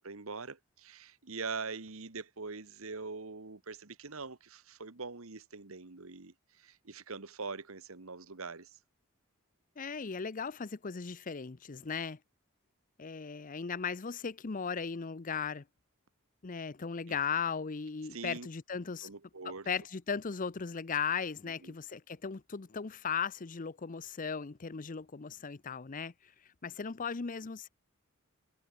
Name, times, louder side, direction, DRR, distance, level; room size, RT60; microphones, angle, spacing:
voice 1, 0.0-8.8 17.1-17.2 18.1-18.5 19.0-19.7 21.4-21.8, right 4 dB, 70° right, 1.5 m, -43 dB
voice 2, 9.8-12.2 13.0-15.6 16.4-19.1 19.7-26.1 26.6-27.7, left 6 dB, 40° left, 0.6 m, -37 dB
head